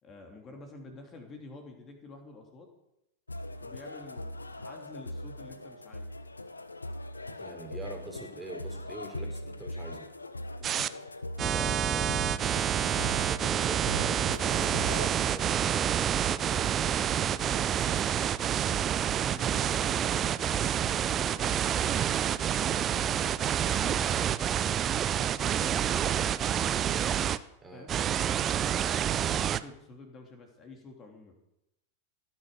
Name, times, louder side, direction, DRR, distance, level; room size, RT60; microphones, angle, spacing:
voice 1, 0.0-2.7 3.6-6.1 10.6-10.9 11.4-12.1 12.5-12.7 16.4-17.0 17.3-21.8 22.7-27.1 27.7-27.9 28.8-31.4, left 3 dB, 25° left, 2 dB, 3.3 m, -49 dB
sound 1, 3.3-15.1, left 1 dB, 80° left, 1.0 m, -40 dB
voice 2, 7.3-10.1 11.4-12.0 13.1-16.7 27.6-27.9, right 2 dB, 10° right, 2 dB, 3.6 m, -44 dB
sound 2, 10.6-10.9 11.4-27.4 27.9-29.6, right 9 dB, 25° right, 0.7 m, -28 dB
17.0 x 9.5 x 6.8 m, 0.84 s
figure-of-eight pair, 90°, 0 cm